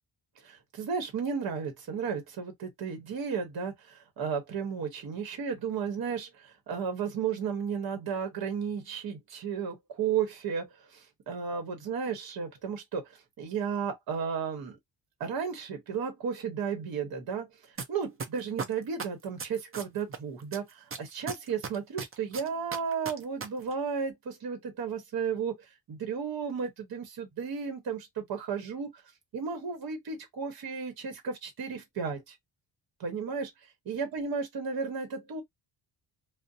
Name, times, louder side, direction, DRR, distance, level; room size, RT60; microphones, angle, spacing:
voice 1, 0.4-13.0 13.4-14.8 15.2-17.5 17.9-29.0 29.3-32.3 33.0-33.5 33.9-35.4, right 6 dB, 50° right, 1.0 m, -34 dB
sound 1, 17.8-17.9 18.2-20.2 20.5-23.5 23.7-23.8, right 5 dB, 30° right, 0.6 m, -35 dB
2.5 x 2.1 x 2.6 m
cardioid pair, 110°, 47 cm